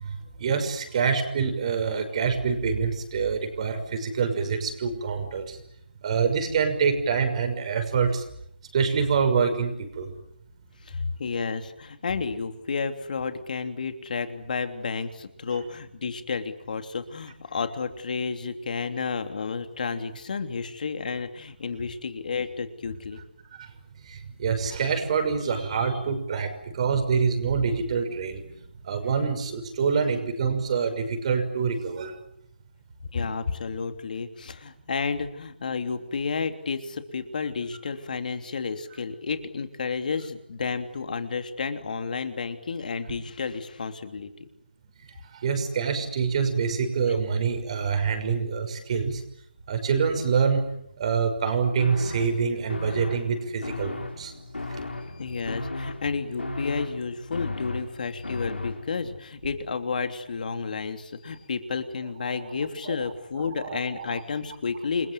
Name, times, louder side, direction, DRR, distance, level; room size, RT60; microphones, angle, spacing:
voice 1, 0.0-5.6 6.0-8.2 8.7-10.1 23.6-23.7 24.0-32.2 45.3-49.2 49.7-50.6 51.0-54.3 62.9-63.0 63.6-64.2, right 5 dB, 40° right, 7 dB, 6.0 m, -26 dB
voice 2, 10.8-23.2 33.1-44.5 55.1-65.1, left 5 dB, 50° left, 7 dB, 3.2 m, -31 dB
sound 1, 51.8-59.2, left 2 dB, 90° left, 5.3 m, -36 dB
29.5 x 22.0 x 9.4 m, 0.76 s
figure-of-eight pair, 155°, 6 cm